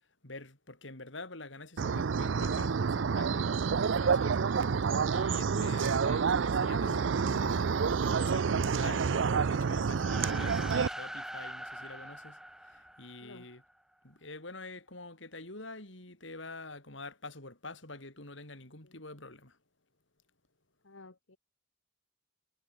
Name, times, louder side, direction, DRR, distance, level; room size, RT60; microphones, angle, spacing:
voice 1, 0.2-4.4 5.1-13.6 14.0-19.6, left 2 dB, 75° left, 5.1 m, -46 dB
sound 1, 1.8-10.9, right 5 dB, 75° right, 0.5 m, -28 dB
voice 2, 5.4-5.7 13.2-13.5 18.8-19.0 20.8-21.4, left 2 dB, 90° left, 2.1 m, -53 dB
sound 2, 9.9-13.5, equal, 5° right, 1.1 m, -43 dB
head